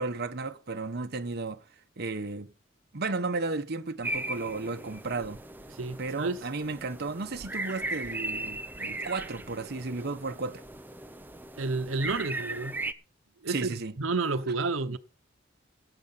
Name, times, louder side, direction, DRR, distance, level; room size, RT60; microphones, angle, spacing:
voice 1, 0.0-1.6 2.0-2.5 2.9-5.4 6.0-10.6 13.5-13.9, right 3 dB, 55° right, 1.1 m, -34 dB
sound 1, 4.0-12.9, right 2 dB, 10° right, 0.8 m, -38 dB
voice 2, 5.7-6.4 11.6-12.8 13.4-15.0, right 3 dB, 85° right, 1.0 m, -30 dB
18.0 x 7.9 x 5.7 m
head